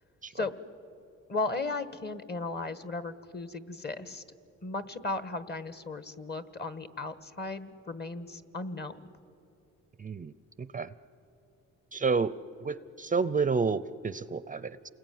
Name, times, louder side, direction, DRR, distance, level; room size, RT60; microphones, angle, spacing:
voice 1, 1.3-4.2 4.6-9.1, left 3 dB, 35° left, 12 dB, 1.5 m, -36 dB
voice 2, 10.0-10.3 10.6-10.9 11.9-12.3 12.6-14.9, right 5 dB, 25° right, 16 dB, 0.6 m, -30 dB
28.5 x 20.5 x 9.4 m, 2.8 s
cardioid pair, 90°, 30 cm